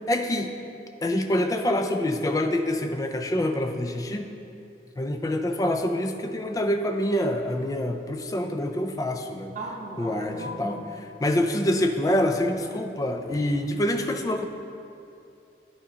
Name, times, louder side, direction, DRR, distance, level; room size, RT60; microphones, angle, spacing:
voice 1, 0.1-0.5 1.0-4.4 5.0-9.6 10.0-10.8 11.2-14.5, left 1 dB, 20° left, 6 dB, 0.4 m, -26 dB
voice 2, 9.5-10.9, right 1 dB, 45° right, -1 dB, 0.9 m, -36 dB
10.5 x 5.0 x 2.8 m, 2.6 s
head